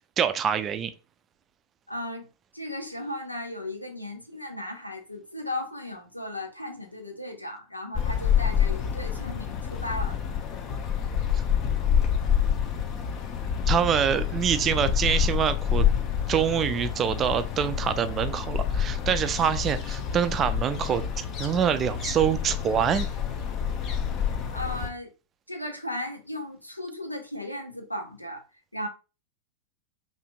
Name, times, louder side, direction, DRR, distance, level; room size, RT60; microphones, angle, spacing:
voice 1, 0.2-0.9 11.3-11.4 13.7-15.9 16.3-23.1, right 8 dB, 25° right, 0.4 m, -25 dB
voice 2, 1.9-2.3 2.5-10.2 24.5-25.1 25.5-28.4 28.7-28.9, left 1 dB, 85° left, 0.7 m, -36 dB
sound 1, 7.9-24.9, left 8 dB, 35° left, 0.6 m, -27 dB
5.0 x 2.6 x 2.2 m
figure-of-eight pair, 90°, 0 cm